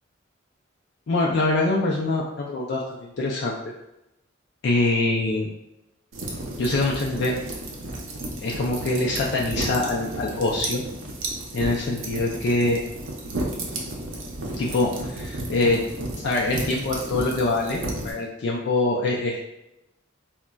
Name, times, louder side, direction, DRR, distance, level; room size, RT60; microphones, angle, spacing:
voice 1, 1.1-3.7 4.6-5.5 6.6-7.3 8.4-10.8 11.5-12.8 14.6-15.8 16.2-19.4, left 2 dB, 60° left, -2 dB, 0.4 m, -24 dB
sound 1, 6.1-18.1, right 1 dB, 90° right, 0.6 m, -33 dB
3.8 x 2.1 x 2.2 m, 0.88 s
head